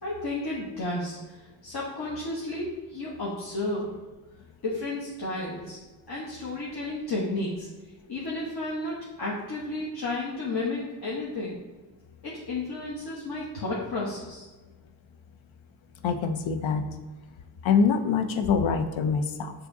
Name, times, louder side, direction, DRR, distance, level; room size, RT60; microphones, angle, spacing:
voice 1, 0.0-3.9 4.6-5.8 6.1-7.7 8.1-11.6 12.2-14.5, left 2 dB, 50° left, -6 dB, 1.1 m, -32 dB
voice 2, 16.0-16.9 17.6-19.5, left 5 dB, 75° left, 7 dB, 0.6 m, -24 dB
6.7 x 2.9 x 2.6 m, 1.2 s
cardioid pair, 70°, 47 cm